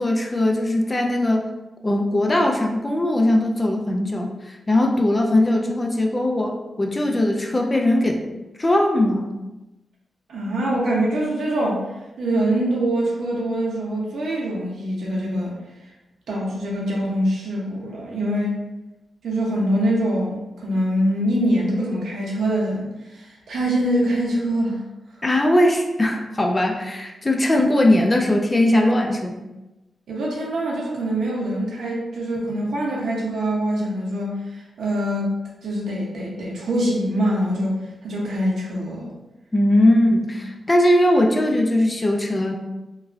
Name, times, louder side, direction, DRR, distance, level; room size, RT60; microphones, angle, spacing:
voice 1, 0.0-1.5 1.8-8.2 8.6-9.3 25.2-29.4 39.5-42.5, left 1 dB, 25° left, 2 dB, 0.4 m, -20 dB
voice 2, 10.3-11.8 12.2-15.6 16.3-18.6 19.2-24.8 30.1-37.8 38.0-39.1, right 1 dB, 85° right, -3 dB, 0.7 m, -24 dB
3.0 x 2.3 x 2.5 m, 1.0 s
cardioid pair, 80°, 0 cm